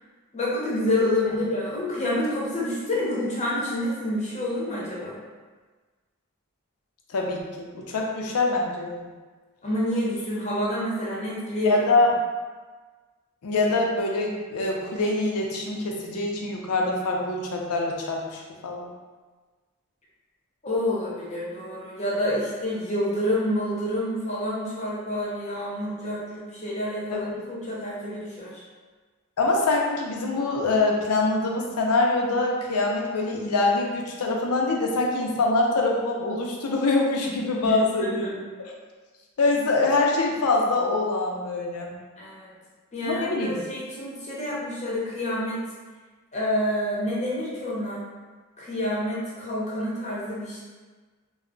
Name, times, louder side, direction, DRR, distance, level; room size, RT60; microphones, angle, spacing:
voice 1, 0.3-5.2 9.6-11.8 20.6-28.6 37.6-38.4 42.2-42.5 42.9-45.6 46.3-48.1 48.6-50.6, left 1 dB, 30° left, -6 dB, 0.7 m, -28 dB
voice 2, 7.1-9.1 11.6-12.1 13.4-18.9 27.1-27.3 29.4-38.3 39.4-41.9 43.0-43.6, left 2 dB, 80° left, -1 dB, 0.5 m, -24 dB
2.2 x 2.0 x 3.7 m, 1.4 s
head